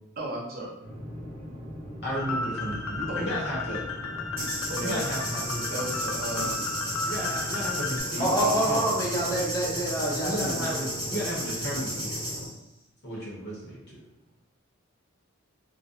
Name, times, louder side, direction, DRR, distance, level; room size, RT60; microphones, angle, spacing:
voice 1, 0.2-0.7 3.1-3.3 4.7-5.0 5.7-6.6 8.1-8.7, right 1 dB, 45° right, -5 dB, 0.6 m, -34 dB
sound 1, 0.8-12.5, equal, 80° right, 0.7 m, -39 dB
voice 2, 2.0-3.8 4.8-5.6 7.0-8.3 8.7-8.8 10.2-12.4 13.0-14.0, equal, 50° left, -6 dB, 0.9 m, -33 dB
sound 2, 2.2-8.0, left 3 dB, 75° left, 0.3 m, -34 dB
sound 3, 4.4-12.5, equal, 10° right, 1.0 m, -34 dB
voice 3, 8.2-10.8, right 1 dB, 15° left, -5 dB, 0.6 m, -27 dB
2.4 x 2.1 x 2.5 m, 0.89 s
head